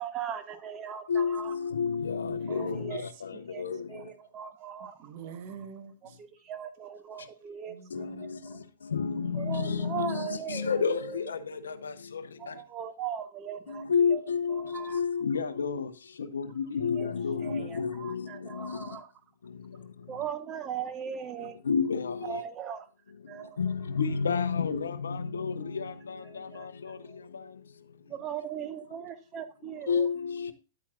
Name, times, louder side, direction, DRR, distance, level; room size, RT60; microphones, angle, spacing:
voice 1, 0.0-1.6 2.5-3.1 3.5-3.6 3.9-5.1 6.2-8.6 9.3-11.2 12.4-14.2 14.5-15.0 17.0-17.1 17.4-19.1 20.1-21.6 22.2-22.9 23.3-23.6 26.2-27.2 28.1-30.1, right 8 dB, 30° right, 1.0 m, -39 dB
voice 2, 1.1-3.9 7.9-12.5 13.7-15.9 16.2-18.8 21.6-22.4 23.6-27.0 27.3-27.5 29.6-30.5, left 6 dB, 80° left, 0.6 m, -31 dB
voice 3, 2.2-2.7 3.3-3.4 4.8-6.2 7.7-8.3, right 7 dB, 55° right, 1.2 m, -46 dB
9.3 x 8.4 x 2.3 m
hypercardioid pair, 105°, 0 cm